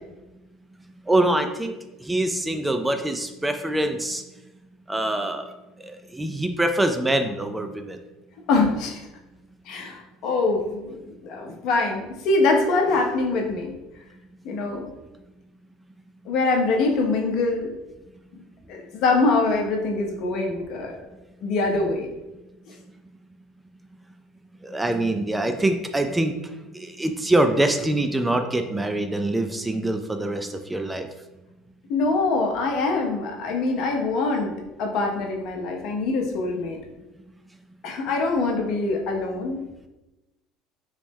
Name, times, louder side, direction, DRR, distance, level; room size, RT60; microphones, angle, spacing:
voice 1, 1.1-1.8 2.0-4.2 4.9-5.5 5.8-8.0 24.6-26.3 26.7-31.1, right 1 dB, 10° right, 6 dB, 0.3 m, -24 dB
voice 2, 8.5-9.0 9.7-13.8 14.4-14.8 16.3-17.7 18.7-20.9 21.4-22.1 22.7-22.8 31.9-34.5 34.8-36.8 37.8-39.6, left 3 dB, 55° left, 1 dB, 0.7 m, -24 dB
3.2 x 2.9 x 3.3 m, 1.0 s
figure-of-eight pair, 65°, 0 cm